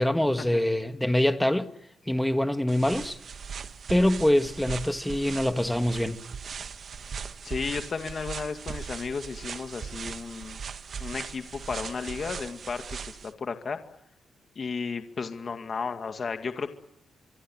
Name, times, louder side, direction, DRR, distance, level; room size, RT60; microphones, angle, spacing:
voice 1, 0.0-1.7 2.1-3.2 3.9-6.2, left 1 dB, 5° left, 1.5 m, -24 dB
sound 1, 2.7-13.3, right 6 dB, 40° right, 1.3 m, -39 dB
voice 2, 7.4-10.6 11.0-13.8 14.6-16.7, left 5 dB, 35° left, 2.1 m, -34 dB
26.5 x 24.5 x 8.8 m
wide cardioid pair, 175°, 0 cm